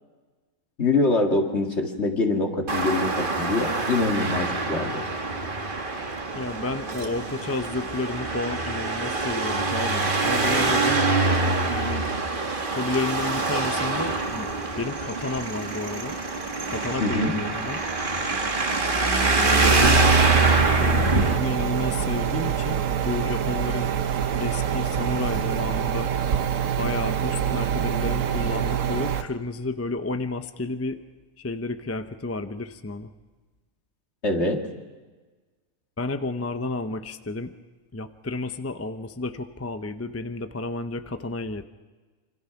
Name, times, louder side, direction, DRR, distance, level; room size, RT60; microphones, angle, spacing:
voice 1, 0.8-5.0 17.0-17.3 34.2-34.6, left 2 dB, 50° left, 3 dB, 2.4 m, -24 dB
Traffic noise roadway noise, 2.7-21.4, right 3 dB, 35° right, 1.7 m, -24 dB
voice 2, 6.3-11.1 11.7-12.1 12.8-14.5 14.8-16.2 16.7-17.8 19.4-20.0 20.8-23.9 24.4-26.1 26.8-31.0 31.4-33.1 36.0-37.5 37.9-41.6, left 2 dB, 15° left, 9 dB, 0.5 m, -31 dB
sound 1, 19.6-29.2, right 8 dB, 65° right, 1.4 m, -26 dB
27.0 x 25.5 x 5.9 m, 1.3 s
omnidirectional pair, 1.5 m